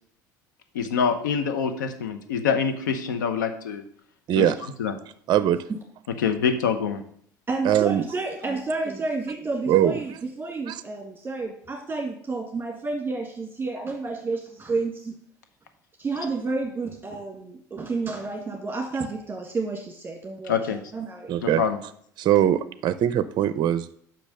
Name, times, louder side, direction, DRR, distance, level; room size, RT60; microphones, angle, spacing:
voice 1, 0.7-3.8 4.3-4.5 4.8-4.9 6.2-7.0 20.5-20.8 21.4-21.8, left 6 dB, 85° left, 8 dB, 0.9 m, -25 dB
voice 2, 5.3-5.6 7.6-8.0 9.7-10.0 10.7-10.8 21.3-21.6 22.2-23.9, right 11 dB, 50° right, 14 dB, 0.5 m, -21 dB
voice 3, 7.5-15.1 16.0-21.4, right 3 dB, 20° right, 1 dB, 1.6 m, -30 dB
6.0 x 5.3 x 6.3 m, 0.64 s
hypercardioid pair, 70°, 10 cm